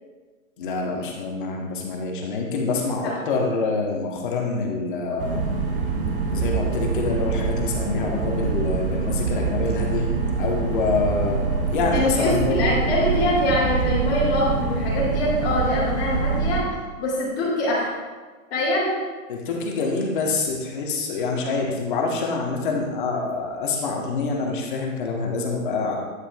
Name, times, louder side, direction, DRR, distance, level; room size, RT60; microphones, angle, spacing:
voice 1, 0.6-5.4 6.3-10.1 10.4-11.4 11.7-12.8 19.3-26.0, left 4 dB, 35° left, 0 dB, 1.3 m, -26 dB
sound 1, 5.2-16.6, right 5 dB, 40° right, 1.1 m, -25 dB
voice 2, 11.9-17.9 18.5-18.9, left 1 dB, 20° left, -13 dB, 2.3 m, -24 dB
9.7 x 7.8 x 2.3 m, 1.4 s
hypercardioid pair, 160°, 42 cm